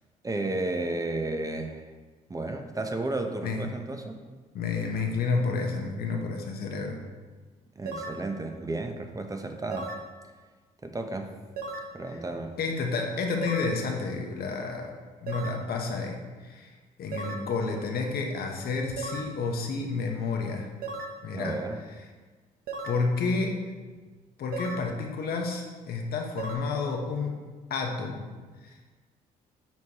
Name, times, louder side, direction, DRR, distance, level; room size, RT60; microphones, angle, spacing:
voice 1, 0.2-1.9 2.3-4.4 7.8-9.9 10.8-11.3 11.9-12.6 21.3-21.8, right 2 dB, 20° right, 5 dB, 0.7 m, -33 dB
voice 2, 4.5-7.0 12.1-12.2 12.6-20.7 21.2-21.6 22.9-23.6 24.4-27.4 27.7-28.3 28.6-28.8, left 4 dB, 65° left, 2 dB, 0.9 m, -30 dB
sound 1, 7.9-8.2 9.7-10.1 11.6-11.9 13.4-13.8 15.3-15.6 17.1-17.5 19.0-19.3 20.8-21.2 22.7-23.0 24.5-24.9 26.4-26.6, right 3 dB, 60° right, 0.8 m, -36 dB
7.1 x 4.6 x 2.9 m, 1.4 s
supercardioid pair, 65°, 17 cm